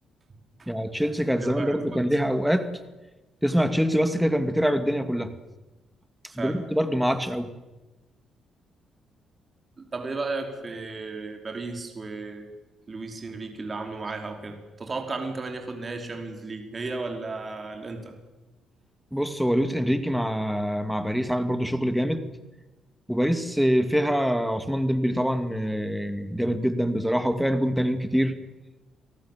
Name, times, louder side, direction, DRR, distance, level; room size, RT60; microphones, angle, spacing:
voice 1, 0.7-2.7 3.4-5.3 6.4-7.5 19.1-22.3 23.1-28.3, equal, ahead, 9 dB, 2.5 m, -24 dB
voice 2, 1.4-2.1 6.3-6.6 9.8-12.5 12.9-18.1, right 3 dB, 35° right, 4 dB, 5.0 m, -34 dB
29.5 x 18.5 x 7.6 m, 1.1 s
cardioid pair, 90°, 0 cm